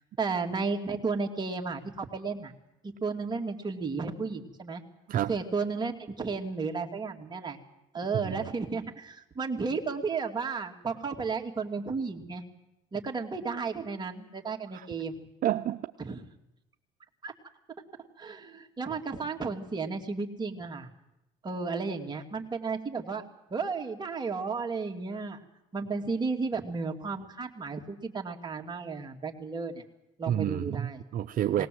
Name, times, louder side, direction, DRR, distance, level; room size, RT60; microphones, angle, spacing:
voice 1, 0.0-2.5 2.8-4.8 5.3-7.6 7.9-12.4 12.9-15.2 16.0-16.2 17.2-17.3 18.2-20.9 21.4-23.2 23.5-25.4 25.7-29.8 30.2-31.0 31.6-31.7, right 4 dB, 25° right, 2 dB, 2.5 m, -33 dB
voice 2, 15.4-15.9 30.3-31.7, right 11 dB, 55° right, 8 dB, 0.7 m, -29 dB
20.0 x 19.0 x 7.8 m, 0.90 s
cardioid pair, 110°, 17 cm